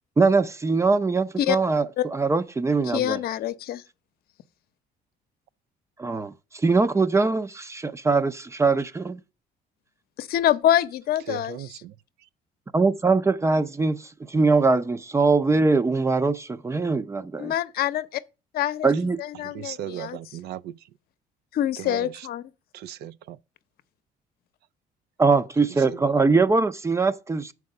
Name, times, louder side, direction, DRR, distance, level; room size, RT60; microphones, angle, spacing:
voice 1, 0.2-3.2 6.0-9.2 12.7-17.5 18.8-19.2 25.2-27.5, right 4 dB, 15° right, 0.5 m, -22 dB
voice 2, 2.9-3.8 10.2-11.6 17.4-18.2 18.5-18.9 19.2-20.2 21.5-22.4, left 12 dB, 65° left, 0.7 m, -25 dB
voice 3, 11.3-11.9 19.4-20.8 21.8-22.3 22.7-23.4 25.9-26.2, right 11 dB, 70° right, 0.4 m, -37 dB
6.9 x 4.7 x 6.4 m
cardioid pair, 110°, 17 cm